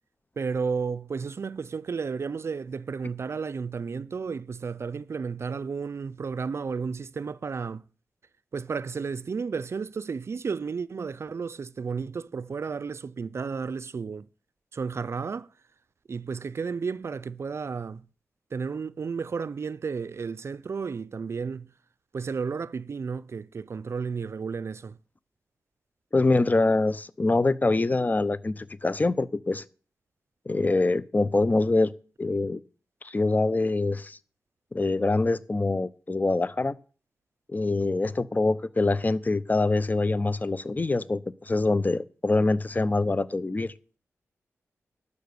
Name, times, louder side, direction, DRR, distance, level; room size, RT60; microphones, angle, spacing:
voice 1, 0.4-7.8 8.5-14.3 14.7-15.5 16.1-18.0 18.5-21.7 22.1-25.0, right 5 dB, 55° right, 0.4 m, -32 dB
voice 2, 26.1-29.6 30.5-31.9 32.2-32.6 33.0-34.2 34.7-36.7 37.5-43.7, left 2 dB, 30° left, 0.8 m, -24 dB
12.0 x 6.7 x 6.8 m
cardioid pair, 70°, 5 cm